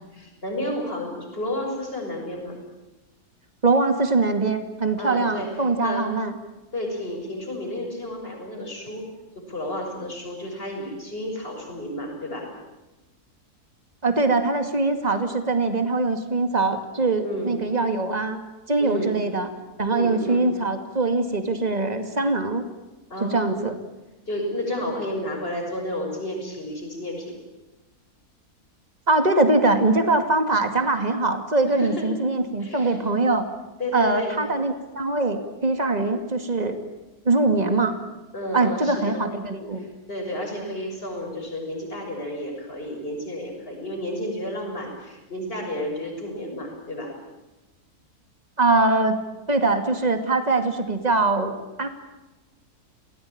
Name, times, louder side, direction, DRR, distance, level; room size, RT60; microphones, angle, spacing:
voice 1, 0.1-2.6 5.0-5.5 5.8-6.1 6.7-9.1 9.3-12.5 17.2-17.5 18.8-19.2 19.9-20.5 23.1-23.6 24.3-27.4 31.6-32.1 32.6-33.0 33.8-34.4 38.3-39.2 39.8-47.1, left 1 dB, 35° left, 2 dB, 6.7 m, -31 dB
voice 2, 3.6-6.3 14.0-18.4 18.7-19.5 19.8-22.6 23.2-23.8 29.1-33.5 33.9-36.8 37.2-37.9 38.5-39.9 48.6-49.2 49.5-51.9, right 3 dB, 25° right, 7 dB, 2.5 m, -22 dB
29.0 x 19.0 x 8.8 m, 1.1 s
omnidirectional pair, 1.6 m